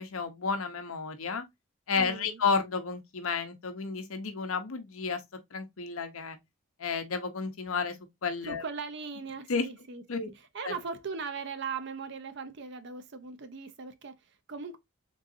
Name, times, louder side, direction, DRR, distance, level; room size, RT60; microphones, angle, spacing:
voice 1, 0.0-1.4 1.9-5.2 5.5-6.4 6.8-8.6 9.5-9.7 10.1-10.3 10.6-10.7, left 5 dB, 75° left, 0.8 m, -32 dB
voice 2, 2.0-2.4 8.4-14.8, right 5 dB, 50° right, 0.5 m, -39 dB
3.8 x 3.7 x 2.5 m
head